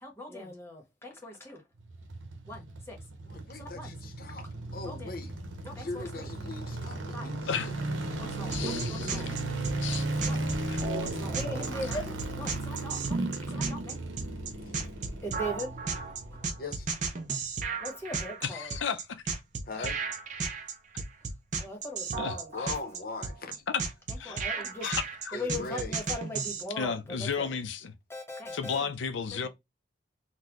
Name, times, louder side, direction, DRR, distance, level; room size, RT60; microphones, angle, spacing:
voice 1, 0.0-1.6 2.5-3.0 3.5-3.9 4.8-5.2 5.6-6.3 7.1-7.3 8.2-9.4 10.2-10.4 10.9-14.0 15.2-15.8 16.3-16.5 17.8-18.8 21.6-22.5 24.1-24.9 25.3-27.5 28.1-28.9 29.3-29.5, left 1 dB, 15° left, 1.1 m, -40 dB
sound 1, 1.8-17.0 17.3-17.4, right 2 dB, 80° right, 0.8 m, -36 dB
voice 2, 3.3-4.5 4.7-5.3 5.7-7.7 14.6-14.8 16.6-16.9 19.7-20.0 22.5-23.6 25.3-26.0, left 3 dB, 50° left, 0.7 m, -40 dB
voice 3, 8.5-9.2 9.8-10.1 10.7-10.8 18.4-19.2 19.8-19.9 22.2-22.7 23.7-23.8 24.2-24.4 24.8-25.7 26.8-27.9 28.5-29.5, left 6 dB, 75° left, 0.5 m, -33 dB
sound 2, 8.5-26.6, right 4 dB, 40° right, 0.5 m, -34 dB
4.0 x 2.1 x 2.9 m
head